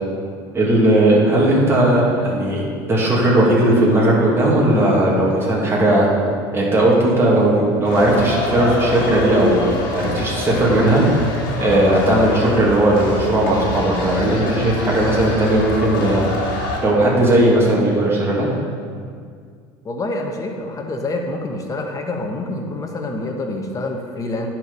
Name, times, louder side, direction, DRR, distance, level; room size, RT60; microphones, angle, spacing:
voice 1, 0.5-6.1 6.5-9.6 9.9-11.0 11.6-16.2 16.8-18.5, right 1 dB, 20° right, -5 dB, 2.4 m, -16 dB
sound 1, 7.8-16.8, left 2 dB, 85° left, 1.6 m, -26 dB
voice 2, 19.8-24.5, left 2 dB, 30° left, 3 dB, 1.2 m, -27 dB
10.5 x 4.6 x 5.4 m, 2.1 s
supercardioid pair, 100°, 11 cm